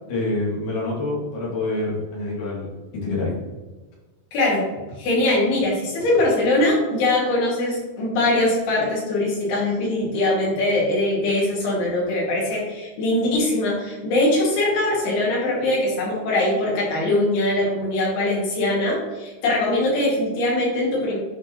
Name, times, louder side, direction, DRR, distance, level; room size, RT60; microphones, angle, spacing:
voice 1, 0.1-2.7 3.0-3.4, left 2 dB, 55° left, -5 dB, 3.6 m, -26 dB
voice 2, 4.3-4.7 5.0-21.2, left 1 dB, 75° left, -4 dB, 4.3 m, -22 dB
10.0 x 5.2 x 3.1 m, 1.3 s
omnidirectional pair, 4.7 m